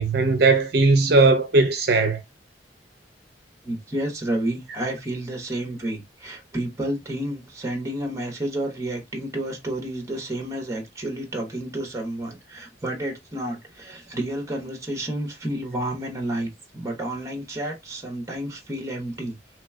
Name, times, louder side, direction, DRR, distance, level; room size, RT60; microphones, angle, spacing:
voice 1, 0.0-2.2, right 3 dB, 65° right, 0.6 m, -18 dB
voice 2, 3.6-19.4, right 1 dB, 20° right, 1.1 m, -30 dB
3.2 x 3.1 x 2.2 m
head